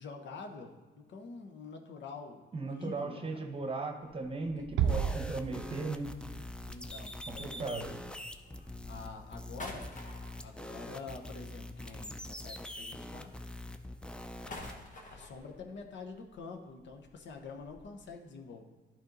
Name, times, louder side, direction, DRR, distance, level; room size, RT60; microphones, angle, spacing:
voice 1, 0.0-3.4 4.4-5.2 6.7-8.0 8.8-9.9 10.4-13.3 14.4-14.8 15.1-18.6, left 4 dB, 65° left, 4 dB, 1.0 m, -47 dB
voice 2, 2.5-6.1 7.3-7.9, right 3 dB, 30° right, 4 dB, 1.0 m, -37 dB
sound 1, 4.0-12.5 12.8-18.1, left 2 dB, 40° left, 1.3 m, -52 dB
sound 2, 4.8-14.7, left 1 dB, 5° left, 0.5 m, -44 dB
Bass drum, 4.8-6.2, right 8 dB, 75° right, 0.4 m, -31 dB
11.0 x 4.4 x 3.9 m, 1.3 s
cardioid pair, 90°, 20 cm